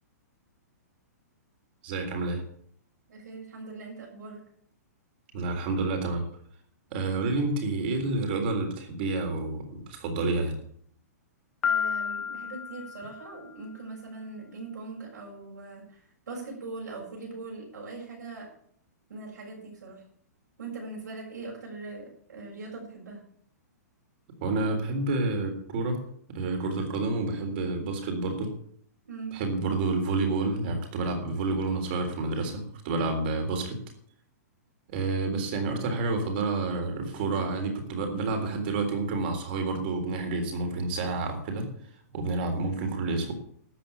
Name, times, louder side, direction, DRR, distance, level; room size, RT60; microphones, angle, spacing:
voice 1, 1.8-2.4 5.3-6.2 6.9-10.6 24.4-26.0 26.3-28.5 29.3-33.8 34.9-41.7 42.1-43.3, right 3 dB, 35° right, 5 dB, 3.6 m, -29 dB
voice 2, 3.1-4.4 11.6-16.0 16.3-18.5 19.1-20.0 20.6-23.2 29.1-29.4, right 3 dB, 85° right, -4 dB, 7.5 m, -41 dB
Piano, 11.6-13.5, left 7 dB, 10° left, 0.7 m, -31 dB
13.0 x 9.0 x 8.6 m, 0.62 s
hypercardioid pair, 175°, 9 cm